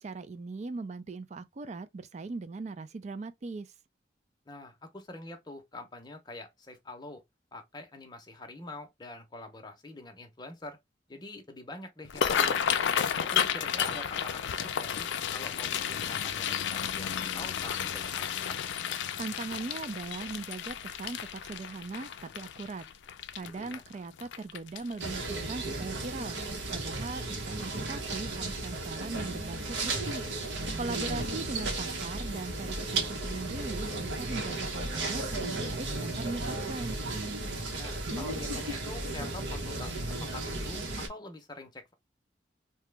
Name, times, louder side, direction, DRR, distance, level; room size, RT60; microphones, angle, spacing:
voice 1, 0.0-3.7 19.2-22.8 23.3-26.4 26.7-30.2 30.7-35.2 35.5-37.0, right 3 dB, 40° right, 0.4 m, -39 dB
voice 2, 4.5-7.2 7.5-10.8 11.1-12.6 13.2-18.6 23.6-23.8 37.8-41.9, left 2 dB, 25° left, 0.7 m, -45 dB
sound 1, 12.0-25.2 25.6-25.9 26.2-26.7 27.1-27.2 28.5-28.6 29.0-29.1 29.6-29.7, left 8 dB, 80° left, 0.4 m, -32 dB
sound 2, 25.0-41.1, right 2 dB, 75° right, 0.9 m, -34 dB
2.9 x 2.2 x 3.2 m
head